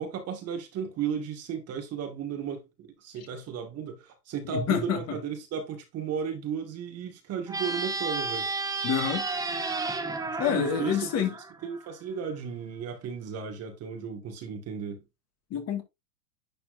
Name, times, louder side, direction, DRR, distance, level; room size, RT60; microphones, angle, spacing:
voice 1, 0.0-8.5 10.2-11.1 11.6-15.0, right 7 dB, 35° right, 2.0 m, -34 dB
voice 2, 4.5-5.2 8.8-9.3 10.4-11.3 15.5-15.8, left 8 dB, 35° left, 2.1 m, -27 dB
sound 1, 7.5-11.9, right 3 dB, 10° right, 0.9 m, -32 dB
10.5 x 4.3 x 2.7 m
hypercardioid pair, 125°, 45 cm